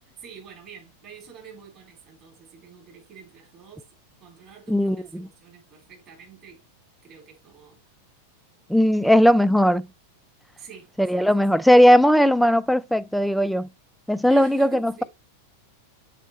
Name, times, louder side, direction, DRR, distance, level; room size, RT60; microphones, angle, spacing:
voice 1, 0.1-3.9 4.2-6.6 7.0-7.8 9.0-9.4 10.6-11.6 14.3-15.0, right 5 dB, 35° right, 3.9 m, -46 dB
voice 2, 4.7-5.3 8.7-9.9 11.0-13.7 14.1-15.0, equal, ahead, 0.3 m, -18 dB
6.9 x 4.9 x 3.1 m
figure-of-eight pair, 90°, 0 cm